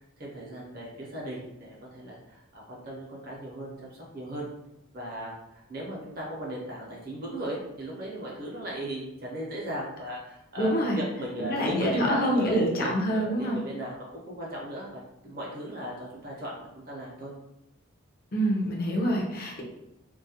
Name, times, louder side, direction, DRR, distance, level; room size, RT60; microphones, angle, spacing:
voice 1, 0.2-3.9 4.1-4.5 4.9-5.3 5.7-14.9 15.2-17.3, right 1 dB, 45° right, -3 dB, 0.6 m, -37 dB
voice 2, 10.6-11.0 11.4-13.6 18.3-19.6, equal, 45° left, -1 dB, 0.5 m, -26 dB
2.3 x 2.1 x 2.8 m, 0.88 s
head